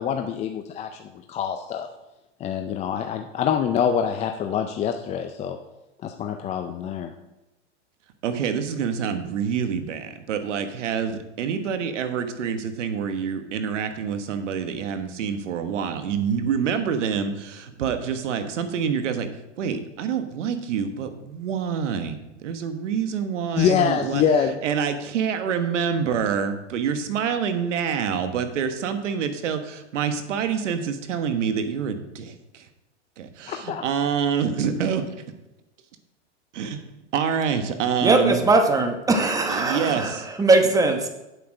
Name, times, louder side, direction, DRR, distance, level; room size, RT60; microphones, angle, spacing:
voice 1, 0.0-1.9 2.4-5.6 6.0-7.1 23.6-24.6 33.5-33.9, left 8 dB, 20° left, 5 dB, 0.4 m, -25 dB
voice 2, 8.2-19.3 19.6-24.2 24.6-32.6 33.2-35.0 36.5-36.8 37.1-38.4 39.5-40.3, right 7 dB, 80° right, 8 dB, 1.3 m, -26 dB
voice 3, 38.0-41.1, right 3 dB, 10° right, 5 dB, 1.0 m, -20 dB
8.6 x 7.9 x 4.9 m, 0.97 s
hypercardioid pair, 125°, 36 cm